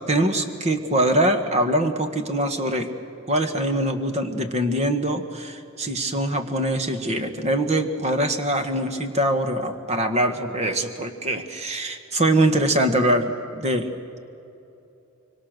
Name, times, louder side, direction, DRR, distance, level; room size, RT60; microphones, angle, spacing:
voice 1, 0.1-2.9 3.3-13.9, right 1 dB, 35° right, 7 dB, 1.5 m, -23 dB
25.0 x 24.5 x 6.7 m, 2.9 s
head